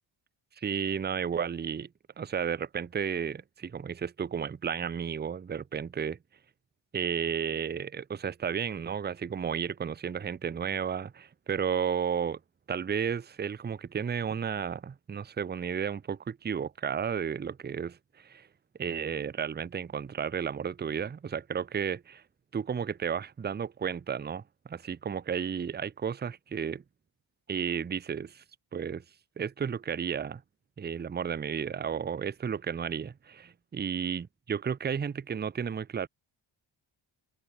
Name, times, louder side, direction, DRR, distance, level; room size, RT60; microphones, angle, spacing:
voice 1, 0.6-1.9 2.2-6.2 6.9-12.4 12.7-18.5 18.8-22.2 22.5-26.8 27.5-28.4 28.7-29.0 29.4-30.4 30.8-36.1, right 7 dB, 20° right, 0.5 m, -33 dB
wide cardioid pair, 170°, 48 cm